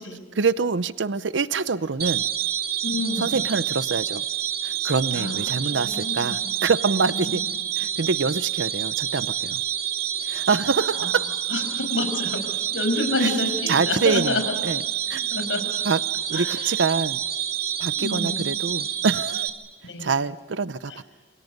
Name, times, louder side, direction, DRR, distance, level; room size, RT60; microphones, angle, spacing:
voice 1, 0.4-2.2 3.2-4.2 4.6-7.4 7.8-9.6 10.3-11.4 13.2-13.3 13.7-14.4 14.6-14.8 15.1-15.4 15.8-16.0 16.3-17.2 17.8-19.5 20.0-21.0, right 4 dB, 75° right, 15 dB, 0.7 m, -25 dB
sound 1, 2.0-19.5, right 10 dB, 55° right, 2.8 m, -28 dB
voice 2, 2.8-3.4 5.1-6.5 7.1-7.4 11.0-11.1 11.5-12.4 12.7-14.4 15.3-15.7 16.3-16.7 18.0-18.6 19.8-20.1 20.9-21.0, left 2 dB, 85° left, 6 dB, 5.8 m, -29 dB
28.5 x 28.0 x 5.3 m, 1.3 s
head